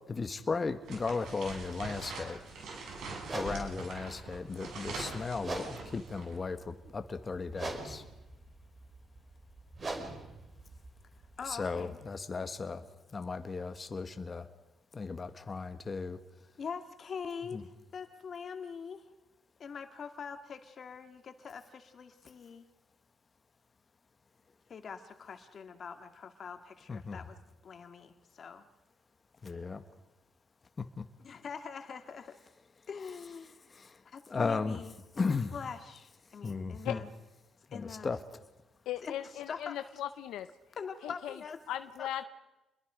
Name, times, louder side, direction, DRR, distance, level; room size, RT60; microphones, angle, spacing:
voice 1, 0.1-2.4 3.3-8.0 11.5-12.8 13.1-14.5 14.9-16.2 17.5-17.6 26.9-27.2 29.4-29.8 30.8-31.0 33.7-34.0 34.3-34.8 35.2-35.5 36.4-37.0 37.7-38.2, left 4 dB, 35° left, 8 dB, 1.4 m, -35 dB
sound 1, 0.8-6.3, right 3 dB, 75° right, 6.9 m, -43 dB
sound 2, 3.2-11.9, right 2 dB, 35° right, 5.1 m, -44 dB
voice 2, 11.4-12.0 16.6-19.1 19.6-22.6 24.7-28.6 31.2-32.4 32.9-33.6 34.0-37.1 37.7-38.1 39.0-39.1 39.5-39.8 40.8-41.6 42.0-42.1, left 6 dB, 50° left, 7 dB, 2.2 m, -44 dB
voice 3, 38.9-40.5 41.0-41.4 41.7-42.2, left 11 dB, 85° left, 10 dB, 0.8 m, -37 dB
28.0 x 22.0 x 5.1 m, 1.0 s
cardioid pair, 90°, 0 cm